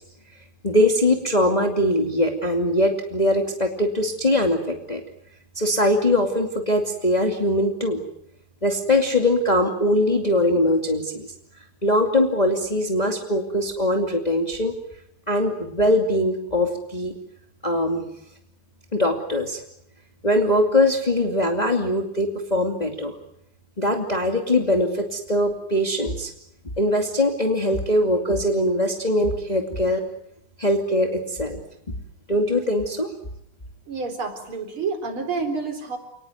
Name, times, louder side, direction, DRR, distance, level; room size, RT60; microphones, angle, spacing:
voice 1, 0.6-5.0 5.6-8.0 8.6-11.3 11.8-14.7 15.3-17.1 17.6-18.0 18.9-19.6 20.2-23.2 23.8-26.3 26.8-30.0 30.6-31.6 32.3-33.1, left 1 dB, 20° left, 3 dB, 2.6 m, -21 dB
voice 2, 33.9-36.0, right 4 dB, 75° right, 6 dB, 4.8 m, -29 dB
29.0 x 19.5 x 9.3 m, 0.78 s
omnidirectional pair, 2.3 m